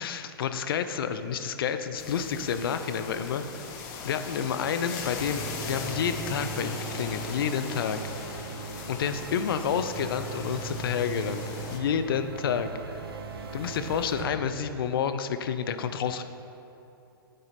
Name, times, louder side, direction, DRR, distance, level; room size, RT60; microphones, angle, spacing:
voice 1, 0.0-3.7 4.1-8.0 8.9-11.4 11.7-13.0 13.5-16.2, left 7 dB, 65° left, 9 dB, 0.5 m, -29 dB
sound 1, 2.0-11.8, left 5 dB, 45° left, 0.9 m, -39 dB
sound 2, 5.1-14.4, right 5 dB, 70° right, 0.7 m, -39 dB
10.0 x 4.0 x 4.1 m, 2.7 s
hypercardioid pair, 115°, 13 cm